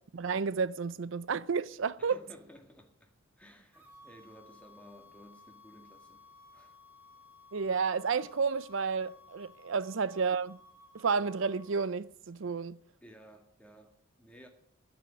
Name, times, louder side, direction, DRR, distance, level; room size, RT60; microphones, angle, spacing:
voice 1, 0.1-2.2 7.5-10.6 10.9-12.8, right 5 dB, 65° right, 0.5 m, -31 dB
voice 2, 2.0-6.2 6.5-6.8 13.0-14.5, equal, 5° left, 1.9 m, -55 dB
sound 1, 3.7-11.9, left 2 dB, 10° right, 1.7 m, -57 dB
10.0 x 9.2 x 9.1 m
head